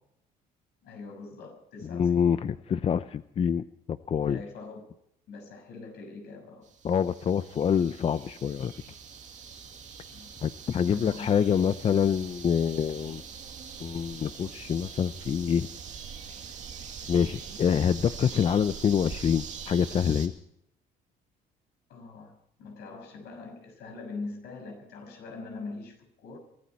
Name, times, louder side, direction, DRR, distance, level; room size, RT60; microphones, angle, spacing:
voice 1, 0.8-2.4 4.3-6.7 10.1-10.3 10.8-11.3 21.9-26.4, left 3 dB, 75° left, 6.2 m, -43 dB
voice 2, 1.9-4.4 6.8-8.7 10.4-13.2 13.8-15.7 17.1-20.3, left 7 dB, 35° left, 0.6 m, -26 dB
sound 1, 6.6-20.3, right 6 dB, 45° right, 2.3 m, -43 dB
23.5 x 13.5 x 4.5 m
cardioid pair, 110°, 17 cm